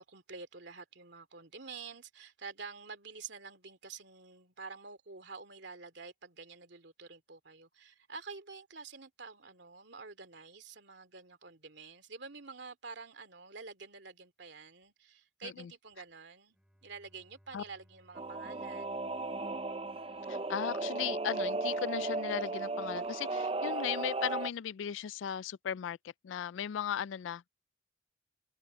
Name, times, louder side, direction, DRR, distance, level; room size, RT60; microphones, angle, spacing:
voice 1, 0.0-19.0, right 4 dB, 70° right, 2.6 m, -48 dB
Bowed string instrument, 16.5-21.2, equal, 5° right, 5.1 m, -67 dB
Singing / Musical instrument, 18.1-24.5, right 3 dB, 30° right, 0.6 m, -35 dB
voice 2, 20.3-26.0 26.2-27.5, left 9 dB, 85° left, 0.3 m, -37 dB
head